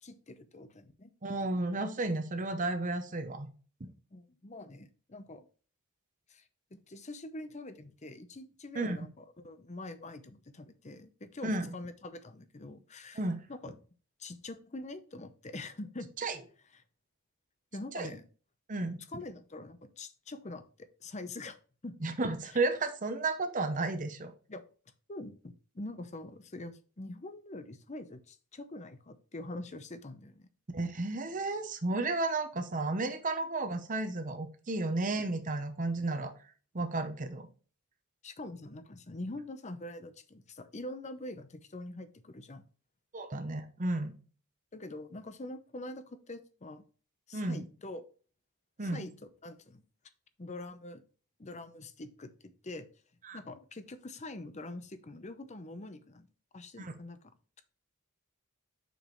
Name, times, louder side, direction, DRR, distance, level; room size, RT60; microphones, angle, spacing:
voice 1, 0.0-1.1 4.1-5.5 6.3-13.2 13.5-13.8 14.2-16.1 16.7-16.8 17.7-18.3 19.1-21.6 21.8-22.0 22.5-22.6 24.5-24.6 25.1-30.5 38.2-42.6 44.7-46.8 47.3-48.0 48.8-49.1 49.4-49.8 50.4-51.0 51.4-52.3 52.6-52.9 53.3-56.3 56.5-57.3, left 2 dB, 30° left, 11 dB, 0.7 m, -44 dB
voice 2, 1.2-3.5 3.8-3.9 8.7-9.1 11.4-11.7 13.1-13.4 16.2-16.4 17.9-18.1 18.7-19.0 22.0-24.3 30.7-36.3 36.7-37.5 43.1-44.1 47.3-47.6 48.8-49.1 53.2-53.4 56.8-56.9, right 2 dB, 35° right, 7 dB, 0.8 m, -33 dB
6.8 x 6.2 x 3.1 m, 0.38 s
head